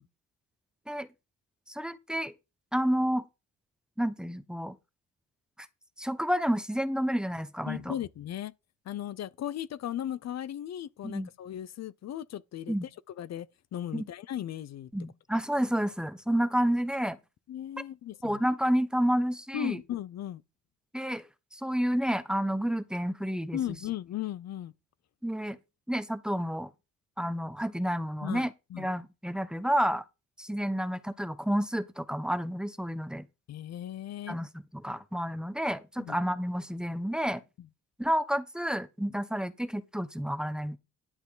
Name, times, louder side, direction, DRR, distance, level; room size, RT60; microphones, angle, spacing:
voice 1, 1.7-2.3 2.7-3.3 4.0-4.7 6.0-7.9 11.0-11.3 12.7-12.9 13.9-14.0 14.9-17.2 18.2-19.8 20.9-21.3 21.5-23.6 25.2-25.6 25.9-26.7 27.2-28.5 28.8-30.0 30.4-33.3 34.3-37.4 38.0-40.8, equal, 5° right, 1.0 m, -30 dB
voice 2, 7.7-8.5 8.9-13.5 13.7-14.9 17.5-18.4 19.5-20.4 23.5-24.7 28.2-28.9 33.5-34.4 36.0-36.2 37.6-37.7, left 11 dB, 60° left, 0.7 m, -37 dB
11.0 x 7.9 x 3.9 m
cardioid pair, 90°, 30 cm